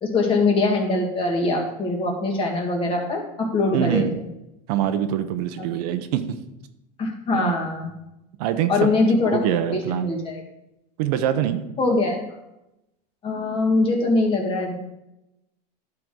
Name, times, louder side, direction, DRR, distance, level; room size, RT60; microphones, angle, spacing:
voice 1, 0.0-4.0 5.6-5.7 7.0-7.9 8.7-9.4 9.9-10.4 11.8-12.2 13.2-14.7, left 2 dB, 25° left, 0 dB, 2.0 m, -22 dB
voice 2, 3.7-4.1 4.7-6.4 7.3-7.5 8.4-8.9 9.2-10.1 11.0-11.6, right 10 dB, 70° right, 9 dB, 0.9 m, -24 dB
11.0 x 5.8 x 3.8 m, 0.89 s
supercardioid pair, 150°, 21 cm